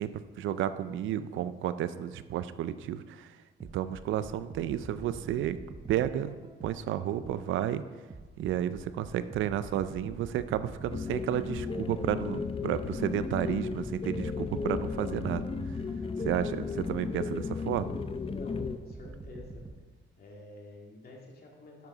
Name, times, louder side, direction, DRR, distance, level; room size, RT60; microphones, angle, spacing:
voice 1, 0.0-3.4 3.7-5.6 5.9-6.3 6.6-7.8 8.4-15.5 16.2-17.9, right 11 dB, 80° right, 13 dB, 0.5 m, -32 dB
sound 1, 3.6-7.6 8.1-12.4 12.9-17.2 17.7-19.8, right 3 dB, 25° right, 0.9 m, -46 dB
sound 2, 10.9-18.8, left 5 dB, 30° left, 0.6 m, -34 dB
voice 2, 16.0-16.4 18.3-19.6 20.2-21.9, left 2 dB, 50° left, -1 dB, 2.5 m, -49 dB
10.5 x 7.0 x 3.9 m, 1.4 s
cardioid pair, 90°, 20 cm